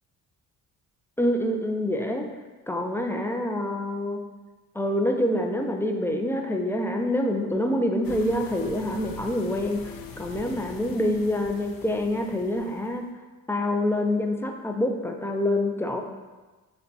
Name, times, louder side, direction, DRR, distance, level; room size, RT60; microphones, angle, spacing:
voice 1, 1.2-2.3 2.7-4.2 4.7-13.0 13.5-16.0, left 1 dB, 5° left, 3 dB, 0.3 m, -26 dB
sound 1, 8.0-13.0, left 5 dB, 60° left, 0.5 m, -43 dB
6.5 x 2.2 x 2.7 m, 1.2 s
supercardioid pair, 65°, 38 cm